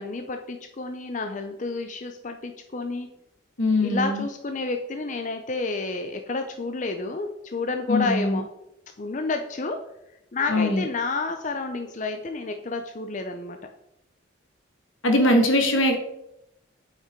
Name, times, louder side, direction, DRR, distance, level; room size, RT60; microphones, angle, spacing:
voice 1, 0.0-3.2 3.8-8.4 9.0-9.8 10.3-13.6, left 3 dB, 40° left, 6 dB, 0.5 m, -30 dB
voice 2, 3.6-4.2 7.9-8.4 10.5-10.8 15.0-16.0, left 1 dB, 80° left, 4 dB, 1.6 m, -21 dB
8.5 x 5.9 x 4.5 m, 0.84 s
head